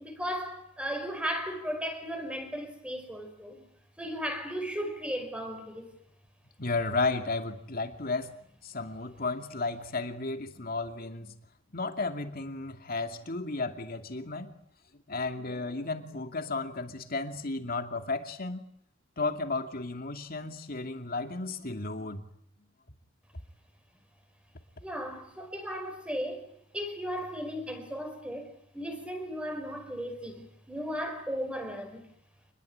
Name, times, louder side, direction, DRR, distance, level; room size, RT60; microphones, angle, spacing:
voice 1, 0.0-3.7 4.0-5.9 24.8-32.1, equal, 5° right, 5.2 m, -36 dB
voice 2, 6.6-8.3 8.6-11.3 11.7-14.5 15.1-18.6 19.2-22.2, left 3 dB, 50° left, 2.5 m, -33 dB
27.0 x 21.5 x 8.8 m
head